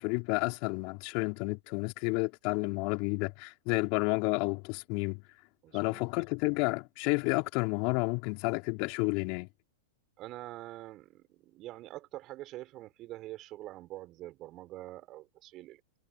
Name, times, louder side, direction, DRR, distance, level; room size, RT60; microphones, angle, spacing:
voice 1, 0.0-5.2 5.7-9.5, left 31 dB, 45° left, 4.0 m, -31 dB
voice 2, 5.6-6.0 10.2-16.0, right 16 dB, 40° right, 4.1 m, -45 dB
hypercardioid pair, 105°, 0 cm